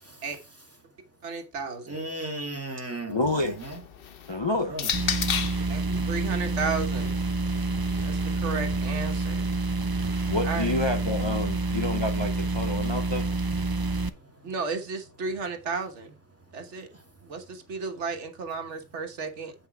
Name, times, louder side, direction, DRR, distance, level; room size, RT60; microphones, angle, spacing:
voice 1, 1.2-2.0 5.7-7.1 8.0-9.6 10.4-10.6 14.4-16.1 16.5-16.9 17.2-19.5, right 4 dB, 85° right, 1.5 m, -33 dB
voice 2, 1.9-3.8 4.7-4.9 5.8-6.1 7.9-8.1 9.8-9.9 13.7-14.5 16.9-17.0, right 2 dB, 10° right, 2.0 m, -37 dB
voice 3, 3.1-3.6 4.3-4.8 10.3-13.3, left 2 dB, 30° left, 0.6 m, -28 dB
sound 1, 3.2-5.7 6.7-8.8, left 8 dB, 60° left, 0.9 m, -34 dB
sound 2, 4.9-14.1, right 3 dB, 35° right, 0.4 m, -28 dB
8.1 x 5.9 x 4.5 m
omnidirectional pair, 1.2 m